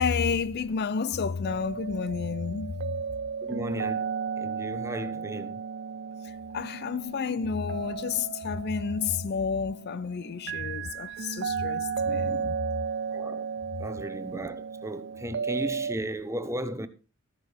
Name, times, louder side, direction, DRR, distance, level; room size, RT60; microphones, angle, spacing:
voice 1, 0.0-3.0 6.2-12.6, left 5 dB, 50° left, 0.5 m, -30 dB
sound 1, 1.4-16.0, right 6 dB, 55° right, 0.5 m, -34 dB
voice 2, 3.4-4.1 4.4-5.5 13.1-13.5 13.8-16.9, right 1 dB, 15° right, 1.0 m, -35 dB
14.0 x 10.5 x 3.5 m
head